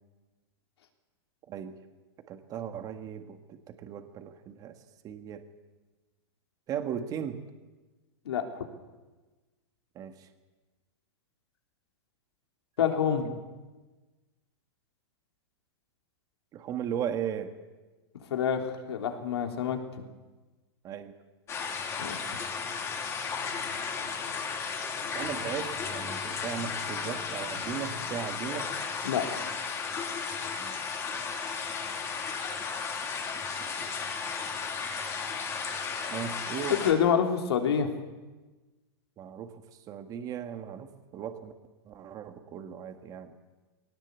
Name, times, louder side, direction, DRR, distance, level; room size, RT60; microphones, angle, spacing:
voice 1, 2.3-4.8 5.0-5.4 6.7-7.4 10.0-10.3 13.2-13.3 16.5-17.5 20.8-21.1 25.1-28.7 30.6-30.7 33.6-33.9 36.1-36.8 39.2-39.5 39.9-41.5 41.9-43.3, right 9 dB, 25° right, 7 dB, 1.7 m, -37 dB
voice 2, 8.3-8.6 12.8-13.2 18.3-19.8 22.0-22.2 29.0-29.2 36.7-37.9, left 8 dB, 80° left, 3 dB, 3.5 m, -27 dB
sound 1, 21.5-36.9, left 5 dB, 20° left, 2.9 m, -34 dB
20.0 x 18.0 x 8.3 m, 1.2 s
hypercardioid pair, 145°, 14 cm